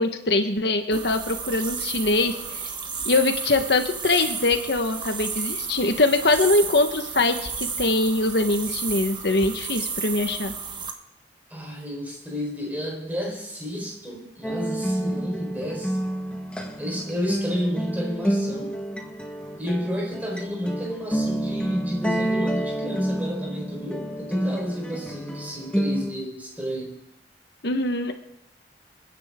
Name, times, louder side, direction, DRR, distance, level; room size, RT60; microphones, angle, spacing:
voice 1, 0.0-2.7 3.0-10.5 27.6-28.1, left 2 dB, 70° left, 6 dB, 1.3 m, -23 dB
sound 1, 0.9-10.9, right 5 dB, 25° right, 1.3 m, -32 dB
voice 2, 11.5-16.1 16.8-18.8 19.6-27.0, equal, 10° right, -1 dB, 4.1 m, -31 dB
sound 2, 14.4-26.1, right 1 dB, 5° left, 1.5 m, -29 dB
28.5 x 10.0 x 3.7 m, 0.88 s
head